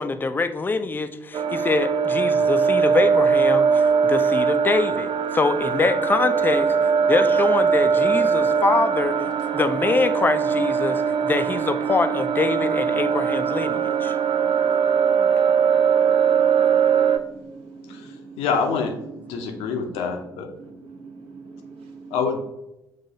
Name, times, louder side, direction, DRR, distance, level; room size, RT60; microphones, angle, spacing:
voice 1, 0.0-9.2 9.5-14.2, left 3 dB, 20° left, 9 dB, 0.4 m, -24 dB
sound 1, 1.3-17.2, right 6 dB, 45° right, 0.4 m, -21 dB
voice 2, 14.0-16.5 16.8-18.4 19.2-20.1 20.6-22.2, right 4 dB, 60° right, 3 dB, 0.9 m, -42 dB
voice 3, 18.4-18.9 19.3-20.5 22.1-22.5, left 5 dB, 65° left, 4 dB, 0.7 m, -25 dB
7.2 x 2.6 x 2.8 m, 0.92 s
figure-of-eight pair, 45°, 11 cm